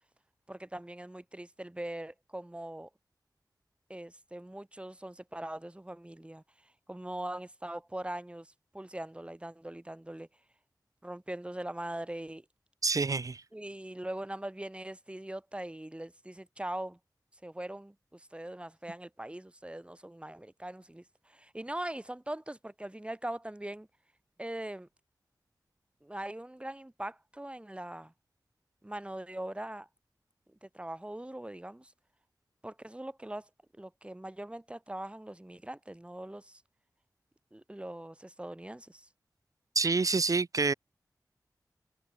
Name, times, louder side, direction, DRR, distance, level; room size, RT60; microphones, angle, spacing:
voice 1, 0.5-2.9 3.9-6.4 6.9-10.3 11.0-12.4 13.5-17.0 17.4-23.9 24.4-24.9 26.0-28.1 28.8-29.9 30.6-31.9 32.6-33.5 33.7-36.6 37.5-39.1, right 1 dB, 15° right, 3.0 m, -41 dB
voice 2, 12.8-13.4 39.7-40.7, right 4 dB, 55° right, 0.8 m, -27 dB
wide cardioid pair, 80°, 7 cm